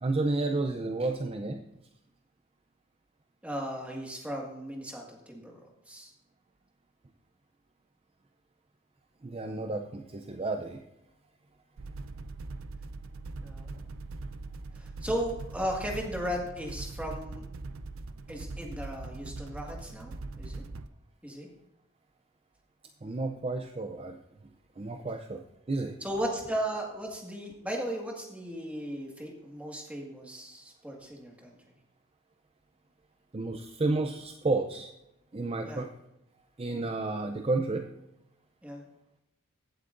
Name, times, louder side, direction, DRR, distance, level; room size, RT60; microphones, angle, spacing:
voice 1, 0.0-1.7 9.2-10.8 23.0-26.0 33.3-34.9 35.3-35.9 36.6-37.9, right 2 dB, 30° right, 6 dB, 0.5 m, -31 dB
voice 2, 3.4-5.5 5.9-6.1 13.4-13.9 14.7-17.4 18.3-20.6 21.2-21.5 26.0-31.6 35.7-35.8 38.6-38.8, equal, 5° right, -1 dB, 1.7 m, -36 dB
sound 1, 11.8-20.9, right 3 dB, 75° right, 0.5 m, -41 dB
16.0 x 8.1 x 2.6 m, 0.87 s
head